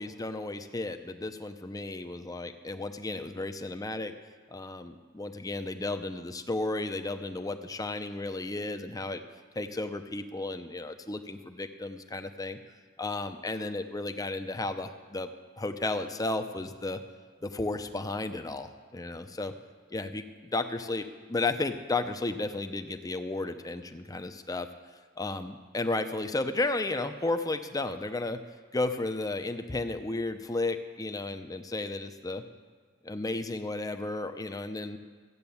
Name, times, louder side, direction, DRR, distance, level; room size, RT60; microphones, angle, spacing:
voice 1, 0.0-4.1 4.5-9.2 9.5-12.6 13.0-15.3 15.6-17.0 17.4-19.5 19.9-20.2 20.5-24.7 25.2-28.4 28.7-32.4 33.0-35.0, left 2 dB, 15° left, 8 dB, 0.6 m, -33 dB
14.0 x 8.9 x 7.1 m, 1.5 s
head